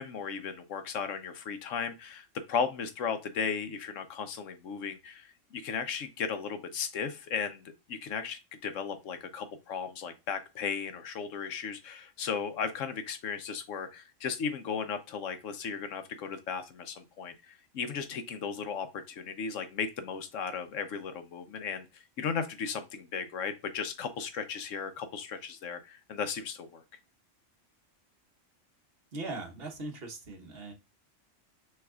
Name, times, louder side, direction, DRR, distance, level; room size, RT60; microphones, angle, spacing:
voice 1, 0.0-26.8, left 6 dB, 85° left, 1.2 m, -36 dB
voice 2, 29.1-30.7, right 2 dB, 55° right, 1.3 m, -40 dB
6.4 x 3.4 x 2.4 m
omnidirectional pair, 1.3 m